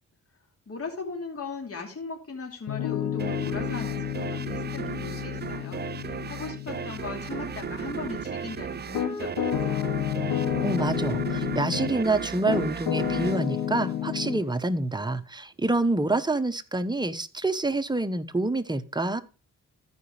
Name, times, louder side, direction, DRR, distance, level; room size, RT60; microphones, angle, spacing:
voice 1, 0.7-9.9, left 4 dB, 45° left, 2 dB, 2.8 m, -38 dB
Piano, 2.7-12.0 12.5-14.5, left 10 dB, 90° left, 1.2 m, -31 dB
sound 1, 3.2-14.5, right 7 dB, 30° right, 0.5 m, -35 dB
voice 2, 10.6-19.2, right 2 dB, 15° right, 10 dB, 0.9 m, -27 dB
14.0 x 5.1 x 3.2 m, 0.33 s
cardioid pair, 65°, 32 cm